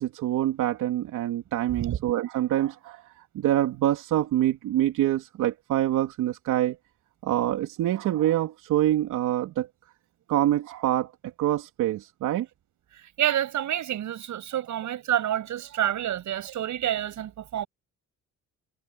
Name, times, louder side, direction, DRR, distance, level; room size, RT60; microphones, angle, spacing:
voice 1, 0.0-3.0 3.3-6.8 7.2-9.7 10.3-12.5, right 13 dB, 85° right, 3.2 m, -25 dB
voice 2, 12.9-17.7, right 11 dB, 70° right, 7.9 m, -28 dB
cardioid pair, 90°, 30 cm